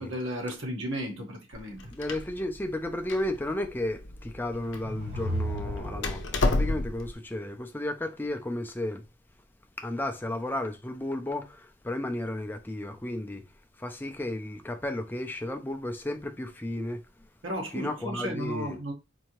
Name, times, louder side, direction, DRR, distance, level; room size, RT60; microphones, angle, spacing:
voice 1, 0.0-1.8 17.4-18.9, equal, 70° right, 1.2 m, -34 dB
Door, 1.5-7.1, left 2 dB, 65° left, 0.7 m, -32 dB
voice 2, 1.9-9.0 9.8-13.4 13.8-17.0 17.7-18.8, left 1 dB, 10° left, 0.4 m, -33 dB
sound 1, 4.6-6.7, equal, 55° right, 1.4 m, -34 dB
4.4 x 2.7 x 3.0 m
head